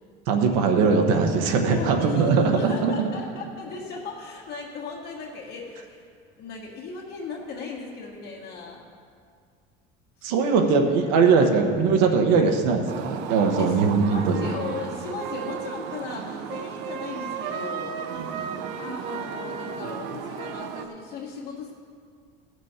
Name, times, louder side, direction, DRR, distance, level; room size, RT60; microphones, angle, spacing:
voice 1, 0.3-2.9 10.2-14.4 18.1-18.5, right 5 dB, 90° right, 3 dB, 1.1 m, -21 dB
voice 2, 1.7-6.1 6.4-8.8 10.2-10.8 11.4-11.5 13.6-18.0 18.3-18.5 18.8-21.7, left 4 dB, 50° left, -5 dB, 1.5 m, -37 dB
sound 1, 12.9-20.9, right 7 dB, 60° right, 0.7 m, -34 dB
16.5 x 6.1 x 4.4 m, 2.2 s
cardioid pair, 165°, 20 cm